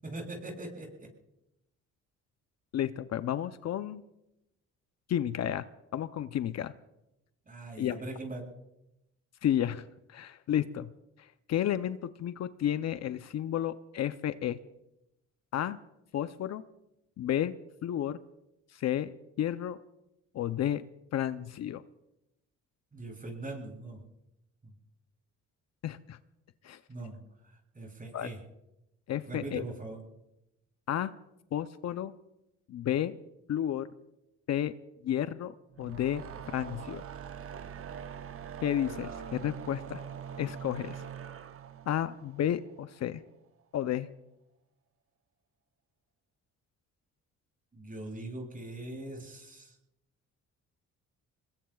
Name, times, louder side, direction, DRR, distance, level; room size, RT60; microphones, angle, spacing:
voice 1, 0.0-1.1 7.5-8.5 22.9-24.0 24.6-24.7 26.9-27.2 27.4-28.4 29.3-30.0 47.7-49.8, right 2 dB, 30° right, 0 dB, 7.6 m, -41 dB
voice 2, 2.7-4.0 5.1-5.7 5.9-6.7 7.8-8.0 9.4-9.8 10.1-10.9 11.2-14.6 15.5-15.8 16.1-16.6 17.2-17.5 17.8-18.2 18.7-19.8 20.3-20.9 21.1-21.8 25.8-26.2 26.6-26.8 28.1-28.3 29.1-29.6 30.9-31.1 31.5-32.1 32.7-33.1 33.5-33.9 34.5-34.7 35.0-37.0 38.6-40.0 40.4-41.0 41.9-43.2 43.7-44.1, left 11 dB, 60° left, 12 dB, 0.6 m, -32 dB
sound 1, 35.7-43.1, right 8 dB, 45° right, 0.8 m, -43 dB
27.0 x 21.5 x 2.4 m, 0.88 s
cardioid pair, 90°, 30 cm